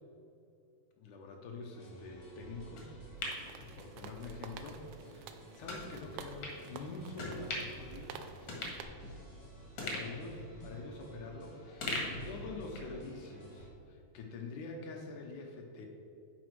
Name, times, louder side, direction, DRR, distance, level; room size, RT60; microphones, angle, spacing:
voice 1, 1.0-4.8 5.1-8.2 9.8-15.9, left 3 dB, 70° left, 2 dB, 2.0 m, -46 dB
sound 1, 1.7-13.7, right 1 dB, 30° left, 0.7 m, -53 dB
sound 2, 2.8-4.4 4.8-4.9 5.7-5.8 6.4-6.6 7.2-7.8 8.1-8.2 8.5-9.4 9.8-11.4 11.8-13.0 13.3-13.4, left 2 dB, 50° left, 2.2 m, -41 dB
sound 3, 3.2-8.8, right 7 dB, 80° right, 2.2 m, -51 dB
10.5 x 5.9 x 4.7 m, 2.7 s
omnidirectional pair, 4.2 m